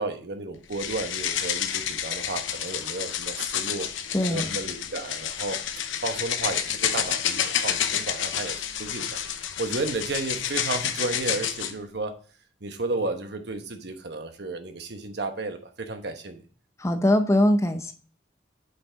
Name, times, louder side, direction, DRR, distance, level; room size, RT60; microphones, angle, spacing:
voice 1, 0.0-3.9 4.3-5.6 6.0-12.2 12.6-16.4, right 2 dB, 60° right, 7 dB, 1.1 m, -33 dB
sound 1, 0.7-11.7, left 9 dB, 85° left, 0.8 m, -29 dB
voice 2, 4.1-4.5 16.8-17.9, left 1 dB, 15° left, 7 dB, 0.6 m, -22 dB
7.9 x 5.7 x 3.9 m, 0.40 s
head